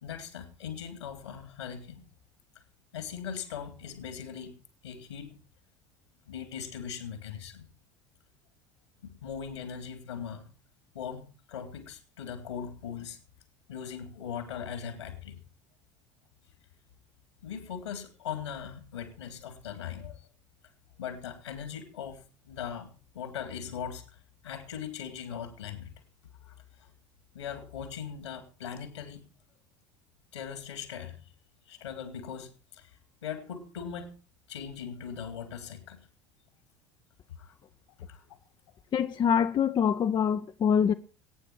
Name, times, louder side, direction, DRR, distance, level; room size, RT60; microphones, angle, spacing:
voice 1, 0.0-2.1 2.9-4.5 4.8-5.3 6.2-7.7 9.0-10.5 10.9-13.2 13.7-15.4 17.4-20.3 21.0-26.0 26.4-26.9 27.3-29.2 30.3-31.3 31.7-34.1 34.5-36.0 37.3-37.6 38.1-38.3, left 7 dB, 75° left, 3.4 m, -40 dB
voice 2, 38.9-40.9, left 7 dB, 30° left, 0.8 m, -25 dB
22.5 x 9.6 x 4.7 m
figure-of-eight pair, 65°, 15 cm